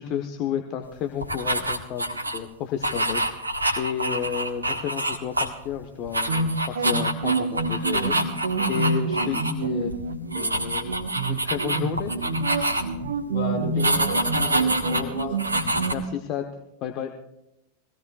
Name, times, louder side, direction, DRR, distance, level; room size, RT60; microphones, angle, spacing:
voice 1, 0.0-3.2 3.8-8.2 8.7-9.9 10.3-10.9 11.3-12.1 15.9-16.5 16.8-17.1, left 8 dB, 40° left, 5 dB, 1.1 m, -31 dB
sound 1, 1.2-2.4 2.8-5.7 6.0-9.5 9.8-10.0 10.3-13.1 13.8-15.9, right 1 dB, 80° right, 1.4 m, -27 dB
sound 2, 6.3-16.0, right 3 dB, 65° right, 1.3 m, -28 dB
voice 2, 13.3-15.3, left 4 dB, 65° left, -2 dB, 6.8 m, -33 dB
22.5 x 17.0 x 2.4 m, 0.88 s
figure-of-eight pair, 90°, 0 cm